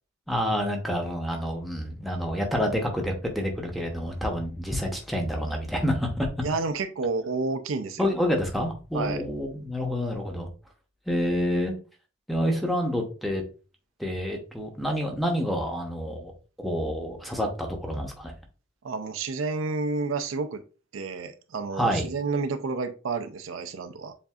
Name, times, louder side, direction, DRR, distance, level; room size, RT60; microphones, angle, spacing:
voice 1, 0.3-6.3 8.0-10.5 11.1-11.7 12.3-13.4 14.0-16.3 16.6-18.3 21.7-22.1, equal, ahead, 0 dB, 0.8 m, -28 dB
voice 2, 6.4-8.1 8.9-9.2 18.8-20.6 20.9-24.2, right 4 dB, 80° right, 9 dB, 0.5 m, -30 dB
7.1 x 2.6 x 2.4 m, 0.35 s
head